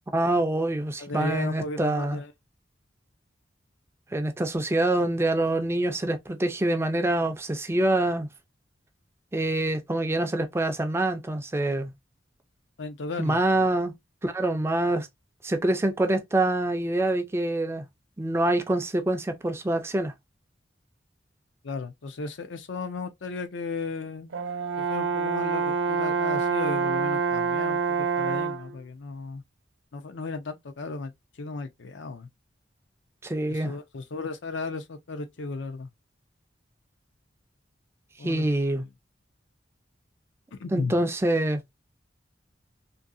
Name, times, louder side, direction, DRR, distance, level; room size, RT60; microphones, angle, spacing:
voice 1, 0.1-2.2 4.1-8.3 9.3-11.9 13.2-13.9 14.2-15.1 15.4-17.9 18.2-20.1 33.2-33.7 38.2-38.9 40.7-41.6, right 1 dB, 15° right, 0.4 m, -25 dB
voice 2, 1.0-2.3 12.8-13.6 21.6-24.3 24.8-29.4 29.9-31.1 31.4-32.3 33.5-35.9 38.2-38.4 38.7-38.8 40.6-41.0, left 3 dB, 70° left, 0.6 m, -35 dB
Brass instrument, 24.3-28.7, right 5 dB, 85° right, 0.6 m, -26 dB
2.6 x 2.6 x 2.4 m
head